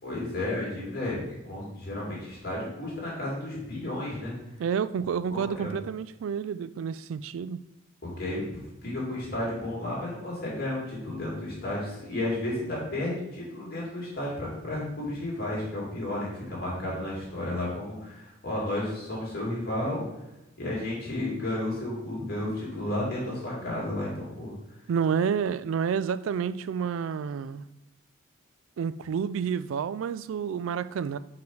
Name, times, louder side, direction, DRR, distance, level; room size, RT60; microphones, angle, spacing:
voice 1, 0.0-4.3 5.3-5.7 8.0-8.5 8.8-20.0 20.6-24.5, left 1 dB, 50° left, 2.5 m, -32 dB
voice 2, 4.6-7.6 24.9-27.6 28.8-31.2, right 7 dB, 80° right, 0.3 m, -29 dB
4.8 x 4.7 x 5.4 m
head